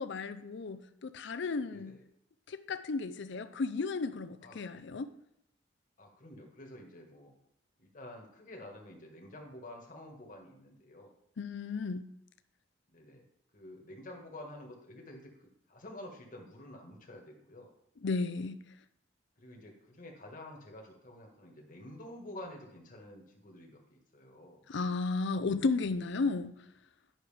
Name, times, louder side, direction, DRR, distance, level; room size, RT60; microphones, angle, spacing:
voice 1, 0.0-1.9 2.5-5.1 11.4-12.0 18.0-18.6 24.7-26.6, left 3 dB, 70° left, 0.5 m, -34 dB
voice 2, 1.7-2.0 4.4-4.6 6.0-7.3 7.8-11.1 12.9-13.2 13.5-17.7 19.4-24.6, left 1 dB, 45° left, 1.5 m, -49 dB
10.5 x 6.3 x 3.3 m
head